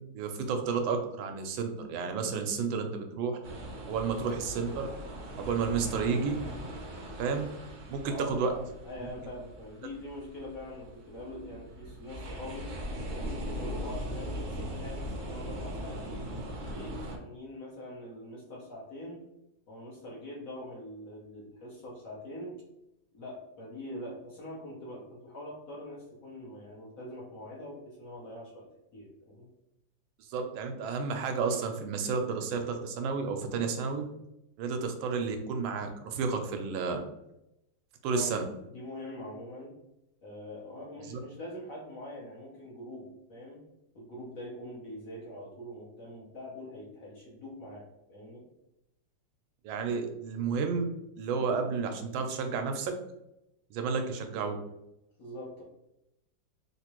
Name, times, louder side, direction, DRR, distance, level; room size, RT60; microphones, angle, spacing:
voice 1, 0.1-3.4 3.9-4.9 5.4-6.4 7.2-7.4 7.9-8.5 30.3-34.0 34.6-37.0 38.0-38.4 41.1-41.2 49.6-50.8 51.2-52.9 53.7-54.6, right 5 dB, 85° right, 5 dB, 1.4 m, -31 dB
sound 1, 3.4-17.2, equal, 60° right, 0.8 m, -40 dB
voice 2, 8.1-12.7 13.1-16.1 16.6-19.2 19.7-22.6 23.1-28.7 28.9-29.5 38.1-38.4 38.7-39.8 40.2-43.6 43.9-48.5 55.2-55.6, left 1 dB, 55° left, -4 dB, 1.0 m, -43 dB
3.6 x 2.5 x 2.9 m, 0.87 s
omnidirectional pair, 2.1 m